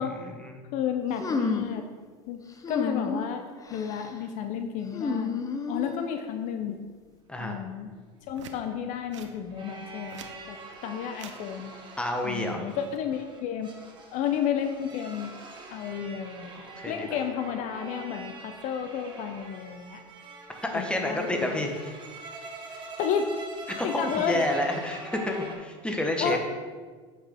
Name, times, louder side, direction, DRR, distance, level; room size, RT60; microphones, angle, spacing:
voice 1, 0.0-0.6 7.3-7.6 12.0-12.7 16.6-17.1 20.6-21.9 23.7-26.4, left 1 dB, 5° left, 3 dB, 1.2 m, -30 dB
voice 2, 0.7-1.8 2.3-2.4 2.7-6.8 7.4-7.9 8.3-10.6 10.8-11.8 12.2-13.7 14.1-15.3 15.7-20.0 20.7-21.6 22.7-23.3 23.8-24.5 26.2-26.4, left 8 dB, 55° left, 7 dB, 0.7 m, -32 dB
sound 1, 1.2-1.8 2.6-3.3 3.7-4.1 4.9-6.1, left 4 dB, 20° left, 0.8 m, -30 dB
sound 2, 7.8-25.6, right 2 dB, 30° right, 1.6 m, -44 dB
sound 3, 8.3-8.6 9.1-9.3 9.9-10.4 11.1-11.4 12.7-13.0, right 7 dB, 80° right, 0.7 m, -45 dB
8.0 x 6.0 x 3.5 m, 1.5 s
hypercardioid pair, 85°, 15 cm